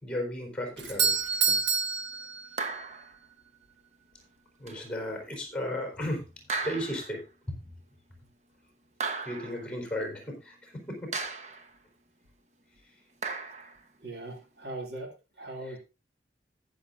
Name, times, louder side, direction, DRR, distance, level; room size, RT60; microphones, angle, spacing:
voice 1, 0.0-1.2 4.6-6.3 6.6-7.2 9.2-11.1, left 1 dB, 5° left, 2 dB, 4.0 m, -34 dB
Doorbell, 0.8-2.9, right 5 dB, 80° right, 1.2 m, -28 dB
sound 1, 2.6-3.1 4.7-4.8 6.5-7.2 9.0-9.7 11.1-11.7 13.2-13.8, right 4 dB, 40° right, 1.1 m, -35 dB
voice 2, 14.0-15.8, right 2 dB, 65° right, 2 dB, 2.4 m, -40 dB
20.0 x 7.1 x 2.6 m, 0.29 s
head